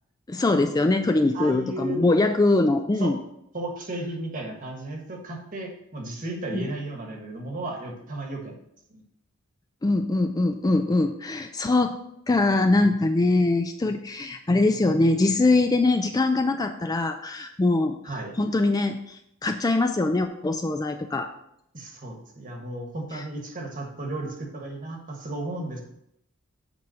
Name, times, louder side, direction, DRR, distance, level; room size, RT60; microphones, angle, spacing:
voice 1, 0.3-3.2 6.5-6.6 9.8-12.0 12.3-21.3, left 2 dB, 20° left, 6 dB, 0.4 m, -23 dB
voice 2, 1.3-2.1 3.0-3.1 3.5-8.6 8.9-9.0 18.0-18.3 21.7-25.8, right 2 dB, 40° right, 1 dB, 1.4 m, -34 dB
8.1 x 3.6 x 6.3 m, 0.77 s
head